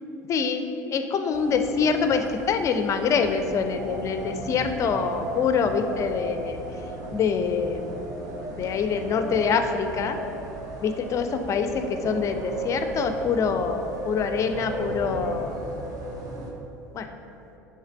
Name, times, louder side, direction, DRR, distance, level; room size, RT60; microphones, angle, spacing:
voice 1, 0.3-6.6 7.1-8.0 8.5-10.2 10.8-15.8 16.9-17.1, left 5 dB, 35° left, 8 dB, 0.4 m, -25 dB
sound 1, 1.3-16.5, right 1 dB, 40° right, 0.9 m, -35 dB
6.3 x 3.2 x 4.7 m, 3.0 s
figure-of-eight pair, 70°, 9 cm